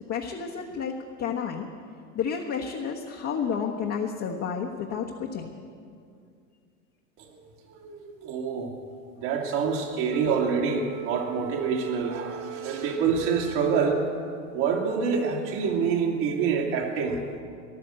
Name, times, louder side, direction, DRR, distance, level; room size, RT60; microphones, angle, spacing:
voice 1, 0.1-1.7 2.1-5.5, left 6 dB, 35° left, -1 dB, 1.3 m, -31 dB
voice 2, 7.2-8.7 9.2-14.1 14.5-17.2, right 6 dB, 55° right, 1 dB, 2.6 m, -27 dB
Wind instrument woodwind instrument, 10.1-14.5, right 8 dB, 30° right, 0.5 m, -39 dB
14.5 x 11.0 x 7.6 m, 2.3 s
hypercardioid pair, 105°, 41 cm